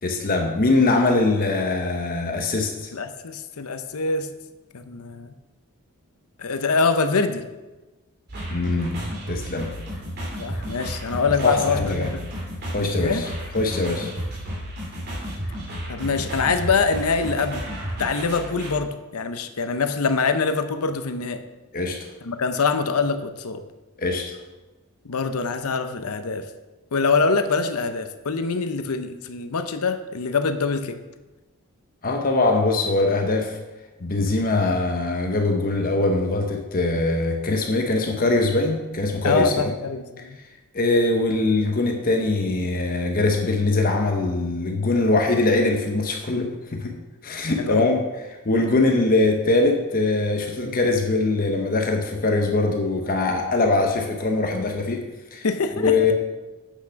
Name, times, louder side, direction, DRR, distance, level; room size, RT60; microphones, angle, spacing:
voice 1, 0.0-2.9 8.5-9.0 9.3-9.7 11.4-12.1 12.7-14.1 21.7-22.1 24.0-24.4 32.0-33.6 34.0-39.7 40.7-47.0 47.2-48.0 48.5-55.0 55.3-55.5 55.8-56.1, left 2 dB, 40° left, 3 dB, 0.8 m, -22 dB
voice 2, 2.9-4.3 4.7-5.3 6.4-7.5 10.4-12.2 13.0-13.2 15.9-17.6 18.0-21.4 22.2-23.6 25.0-26.5 26.9-31.0 39.2-40.4 47.6-47.9 48.8-48.9 55.4-56.1, left 4 dB, 80° left, 9 dB, 0.7 m, -24 dB
sound 1, 8.3-18.7, equal, 45° right, 2.8 m, -32 dB
8.3 x 6.0 x 5.7 m, 1.1 s
head